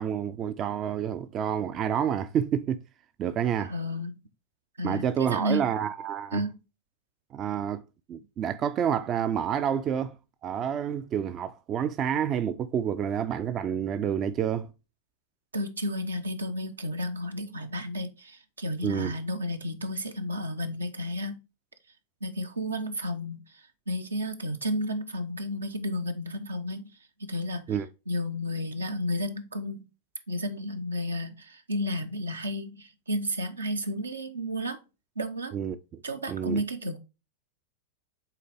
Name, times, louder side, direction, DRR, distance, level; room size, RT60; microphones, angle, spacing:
voice 1, 0.0-2.8 3.2-3.7 4.8-6.5 7.3-7.8 8.1-10.2 10.4-14.7 18.8-19.1 27.7-27.9 35.5-36.0 36.3-36.6, right 8 dB, 30° right, 0.4 m, -29 dB
voice 2, 3.7-4.1 4.8-5.6 6.3-6.6 15.5-21.4 22.2-26.8 27.2-27.8 28.1-29.8 30.3-34.8 35.2-35.6 36.0-37.0, left 1 dB, 75° right, 0.9 m, -32 dB
8.3 x 4.0 x 3.4 m
figure-of-eight pair, 90°, 0 cm